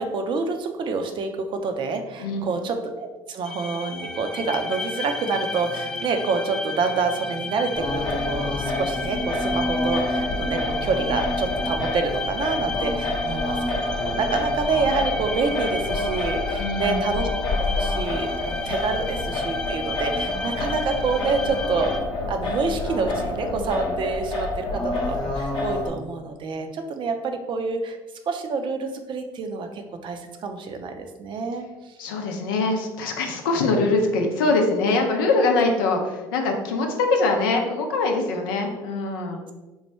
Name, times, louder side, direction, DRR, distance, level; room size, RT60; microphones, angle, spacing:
voice 1, 0.0-17.3 17.7-21.9 22.3-28.0 28.3-31.9, right 4 dB, 50° right, 6 dB, 0.5 m, -27 dB
voice 2, 2.2-2.6 16.6-17.1 32.0-39.4, left 3 dB, 85° left, 3 dB, 0.5 m, -23 dB
sound 1, 3.4-22.0, left 3 dB, 5° left, 0.4 m, -32 dB
Singing, 7.8-25.9, left 2 dB, 45° left, 0.9 m, -28 dB
3.1 x 2.2 x 4.2 m, 1.2 s
hypercardioid pair, 70°, 11 cm